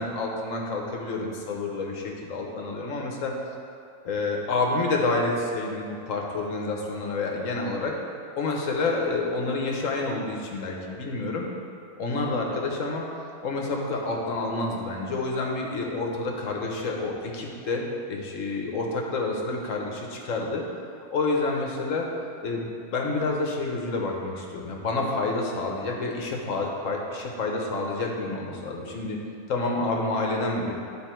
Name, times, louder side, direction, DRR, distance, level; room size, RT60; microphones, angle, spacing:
voice 1, 0.0-3.3 4.0-7.9 8.4-11.5 12.0-13.0 13.4-20.6 21.1-22.1 22.4-27.0 27.4-29.2 29.5-30.7, left 3 dB, 65° left, 0 dB, 1.3 m, -28 dB
11.0 x 3.8 x 4.4 m, 2.4 s
omnidirectional pair, 1.5 m